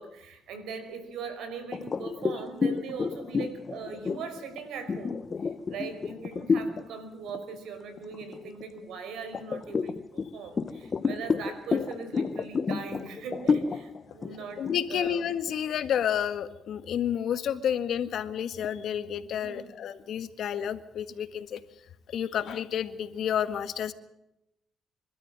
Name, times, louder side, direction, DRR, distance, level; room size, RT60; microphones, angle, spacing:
voice 1, 0.0-15.3 19.3-19.8, right 5 dB, 85° right, 8 dB, 5.3 m, -40 dB
sound 1, 1.7-6.9 7.3-7.6 8.0-8.8 9.3-16.0, left 5 dB, 40° left, 1.3 m, -30 dB
voice 2, 14.6-21.6 22.1-23.9, left 9 dB, 70° left, 10 dB, 1.7 m, -30 dB
26.0 x 13.0 x 8.9 m, 0.86 s
cardioid pair, 90°, 0 cm